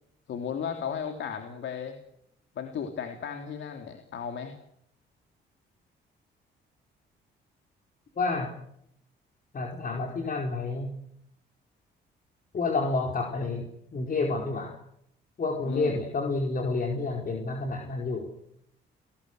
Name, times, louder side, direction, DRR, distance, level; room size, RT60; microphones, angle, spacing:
voice 1, 0.3-2.0 2.5-4.6 15.6-16.0, left 7 dB, 70° left, 5 dB, 3.3 m, -35 dB
voice 2, 8.2-8.5 9.5-10.9 12.5-14.8 15.4-18.3, left 3 dB, 45° left, 1 dB, 4.7 m, -29 dB
29.0 x 19.5 x 8.1 m, 0.74 s
cardioid pair, 90°, 20 cm